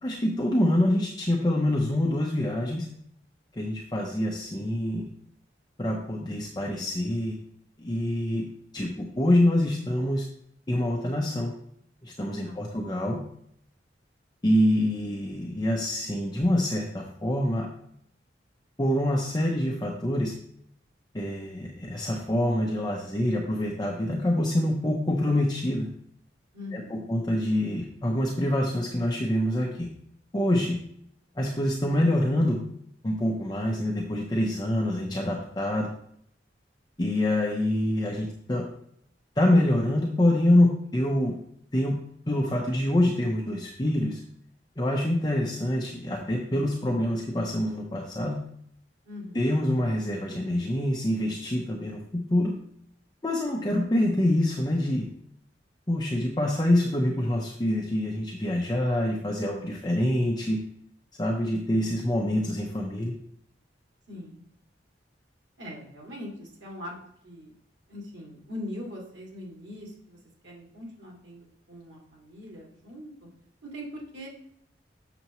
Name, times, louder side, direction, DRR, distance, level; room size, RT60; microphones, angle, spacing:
voice 1, 0.0-2.9 3.5-5.1 5.8-7.4 7.8-8.5 8.7-10.2 10.7-11.5 12.0-13.2 14.4-17.7 18.8-20.3 21.1-25.9 26.7-29.9 30.3-30.8 31.4-32.6 33.0-35.9 37.0-38.6 39.4-41.4 41.7-42.0 42.3-44.2 44.8-48.4 49.3-52.5 53.2-55.1 55.9-60.6 61.2-63.1, left 1 dB, 25° left, -1 dB, 0.7 m, -26 dB
voice 2, 12.4-12.8 26.5-27.2 49.0-49.6 64.1-64.4 65.6-67.5 67.9-70.2 70.4-73.3 73.6-74.3, left 1 dB, 90° right, -3 dB, 2.3 m, -42 dB
6.8 x 6.6 x 3.0 m, 0.68 s
head